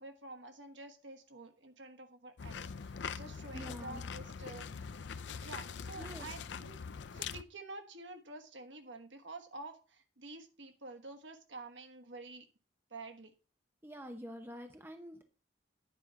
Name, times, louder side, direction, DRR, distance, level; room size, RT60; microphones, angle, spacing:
voice 1, 0.0-4.7 5.3-6.8 7.1-12.5 12.9-13.3, right 2 dB, 80° right, 6 dB, 1.4 m, -49 dB
sound 1, 2.4-7.4, left 6 dB, 75° left, 0.5 m, -43 dB
voice 2, 3.5-4.0 6.0-6.3 13.8-15.2, equal, 10° right, 6 dB, 0.9 m, -46 dB
9.6 x 4.4 x 5.8 m, 0.35 s
head